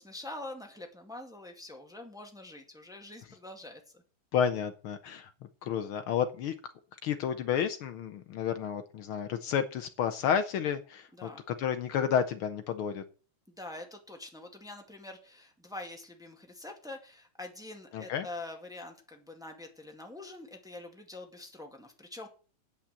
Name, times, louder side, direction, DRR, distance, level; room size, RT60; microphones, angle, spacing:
voice 1, 0.0-3.8 11.1-11.4 13.5-22.3, left 2 dB, ahead, 2 dB, 1.4 m, -45 dB
voice 2, 4.3-5.3 5.6-6.7 7.0-11.3 11.6-13.0 17.9-18.3, left 8 dB, 90° left, 9 dB, 1.1 m, -31 dB
8.8 x 8.5 x 7.5 m, 0.37 s
omnidirectional pair, 3.4 m